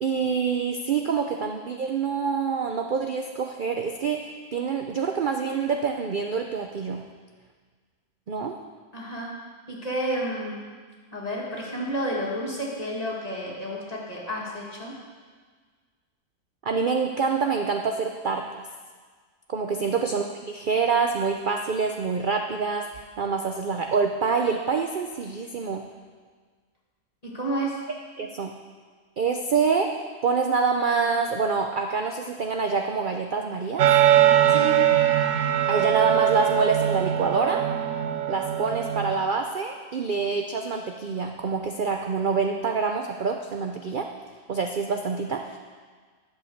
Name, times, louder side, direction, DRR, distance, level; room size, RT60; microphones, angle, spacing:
voice 1, 0.0-7.0 8.3-8.6 16.6-18.7 19.5-22.8 23.2-25.8 28.2-28.5 29.2-29.9 30.2-33.9 35.6-37.6 38.3-44.1 44.5-45.6, right 5 dB, 50° right, 3 dB, 0.7 m, -26 dB
voice 2, 8.9-9.3 9.7-10.6 11.1-15.0 19.7-20.0 27.2-27.8 34.5-34.8, equal, 30° left, -4 dB, 2.3 m, -31 dB
sound 1, 33.8-39.1, right 11 dB, 80° right, 1.1 m, -21 dB
11.5 x 7.5 x 6.5 m, 1.5 s
omnidirectional pair, 1.4 m